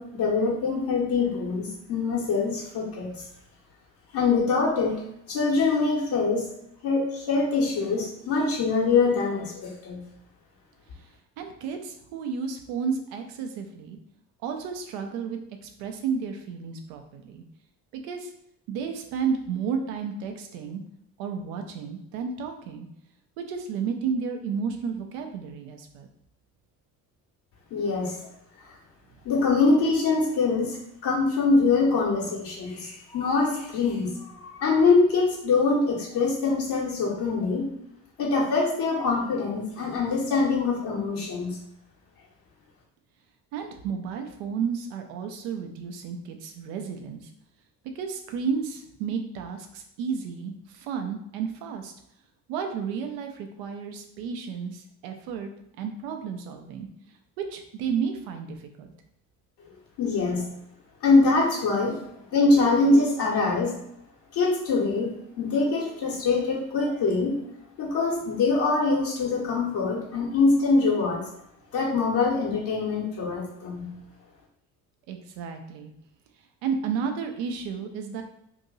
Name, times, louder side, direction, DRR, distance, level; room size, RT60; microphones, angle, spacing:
voice 1, 0.0-3.2 4.1-5.0 5.3-6.5 6.8-10.0 27.7-28.2 28.6-28.7 29.2-30.8 31.0-37.7 38.2-41.6 60.0-60.4 61.0-62.0 62.3-63.7 64.3-65.1 65.4-67.3 67.8-71.2 71.7-73.9, left 3 dB, 55° left, -5 dB, 1.2 m, -24 dB
voice 2, 11.4-14.0 14.4-17.4 17.9-18.3 18.7-20.8 21.2-22.9 23.4-26.1 43.5-47.3 47.9-51.9 52.5-55.5 55.8-56.9 57.4-58.9 75.1-75.9 76.6-78.2, right 6 dB, 65° right, 5 dB, 0.8 m, -32 dB
2.9 x 2.7 x 3.9 m, 0.77 s
hypercardioid pair, 50°, 47 cm